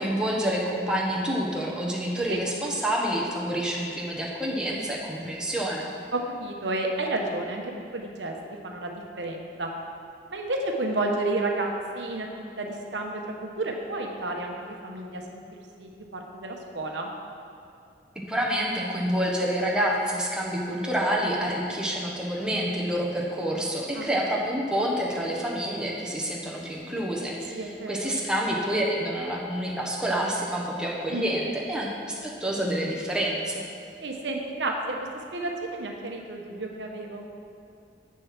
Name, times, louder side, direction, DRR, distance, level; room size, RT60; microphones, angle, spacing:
voice 1, 0.0-5.9 18.1-33.6, equal, 5° right, -3 dB, 1.1 m, -28 dB
voice 2, 6.1-8.3 8.6-9.7 10.3-15.4 15.8-17.1 23.9-24.2 27.5-28.1 31.1-31.3 34.0-35.0 35.3-37.3, right 2 dB, 80° right, 2 dB, 1.0 m, -31 dB
7.6 x 6.6 x 6.0 m, 2.5 s
head